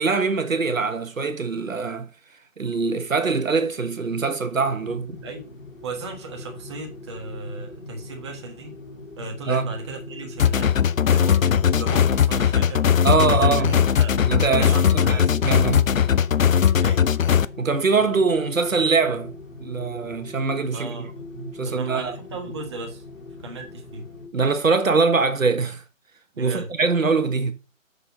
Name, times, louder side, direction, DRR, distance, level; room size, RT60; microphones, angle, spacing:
voice 1, 0.0-2.1 2.6-5.2 9.5-9.7 13.0-13.7 14.2-15.9 17.6-19.3 19.6-21.1 21.4-22.2 24.3-25.8 26.4-27.5, right 4 dB, 75° right, 1.4 m, -23 dB
sound 1, 4.5-24.3, left 3 dB, 90° left, 4.0 m, -41 dB
voice 2, 5.8-8.7 9.1-12.8 13.1-14.2 14.6-15.3 16.8-17.1 20.7-21.3 21.6-23.0 23.4-24.1 26.3-26.7, right 3 dB, 20° right, 1.3 m, -36 dB
sound 2, 10.4-17.5, left 8 dB, 75° left, 0.6 m, -19 dB
6.7 x 6.7 x 4.0 m
figure-of-eight pair, 160°, 40 cm